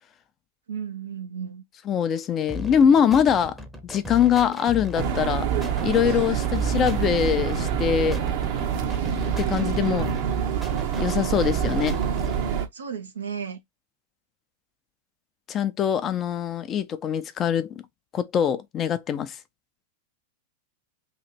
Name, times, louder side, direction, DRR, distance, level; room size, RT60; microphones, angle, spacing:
voice 1, 0.7-1.6 12.7-13.6, right 7 dB, 85° right, 0.9 m, -34 dB
voice 2, 1.9-3.6 3.8-5.5 5.8-8.2 9.4-10.1 11.0-12.0 15.5-17.8 18.1-19.4, left 8 dB, 30° left, 0.6 m, -23 dB
sound 1, 2.5-12.5, left 1 dB, 5° right, 0.9 m, -37 dB
sound 2, 5.0-12.7, right 8 dB, 55° right, 1.1 m, -26 dB
3.1 x 2.7 x 4.3 m
hypercardioid pair, 100°, 0 cm